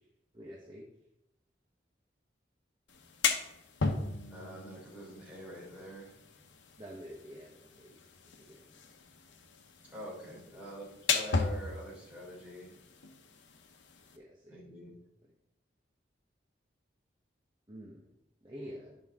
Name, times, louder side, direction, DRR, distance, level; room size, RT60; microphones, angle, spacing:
voice 1, 0.3-0.9 6.8-7.9 8.4-8.7 10.5-10.6 14.1-14.6 17.7-18.1 18.4-19.0, equal, 25° right, -3 dB, 1.0 m, -48 dB
sound 1, 2.9-14.2, left 4 dB, 85° left, 0.9 m, -37 dB
voice 2, 4.3-6.2 9.9-12.7 14.5-14.9, equal, 10° right, -6 dB, 3.4 m, -45 dB
11.0 x 5.4 x 3.6 m, 0.83 s
head